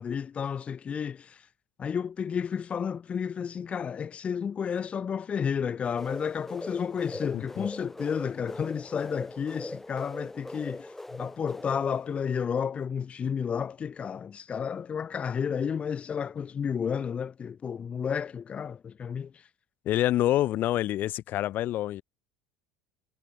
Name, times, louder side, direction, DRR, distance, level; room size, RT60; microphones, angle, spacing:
voice 1, 0.0-1.5 1.8-19.5, left 7 dB, 30° left, 1.7 m, -32 dB
sound 1, 5.8-12.5, left 1 dB, 5° left, 5.1 m, -41 dB
voice 2, 19.9-22.0, left 14 dB, 50° left, 2.3 m, -26 dB
supercardioid pair, 105°, 4 cm